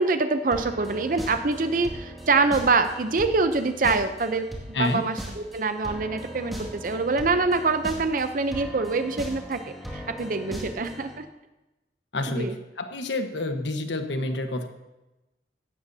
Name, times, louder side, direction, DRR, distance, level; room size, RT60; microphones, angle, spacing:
voice 1, 0.0-4.5 4.8-9.6 9.9-11.2 12.3-12.5, right 3 dB, 50° right, 9 dB, 0.6 m, -25 dB
sound 1, 0.5-11.2, equal, ahead, 2.1 m, -39 dB
voice 2, 12.1-14.7, left 2 dB, 85° left, 6 dB, 1.2 m, -28 dB
16.0 x 12.0 x 2.8 m, 1.0 s
head